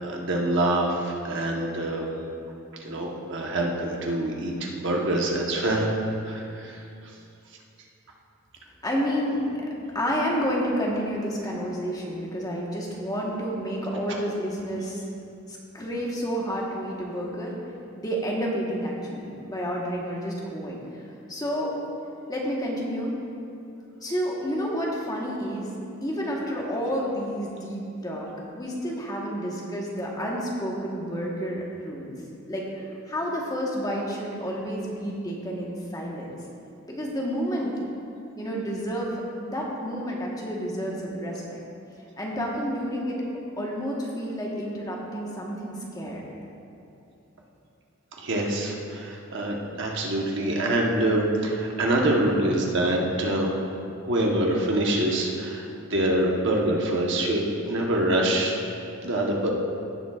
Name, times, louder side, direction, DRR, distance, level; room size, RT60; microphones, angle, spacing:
voice 1, 0.0-2.1 2.8-5.9 6.2-6.8 48.2-53.7 54.0-58.6 59.0-59.5, right 1 dB, 60° right, -1 dB, 1.1 m, -25 dB
voice 2, 8.8-9.5 9.9-15.0 15.5-17.5 18.0-21.7 22.3-23.2 24.0-25.7 26.0-32.1 32.5-36.3 36.9-37.7 38.4-41.6 42.2-43.2 43.6-46.2, equal, 20° left, -3 dB, 1.2 m, -30 dB
16.5 x 7.1 x 2.4 m, 2.6 s
head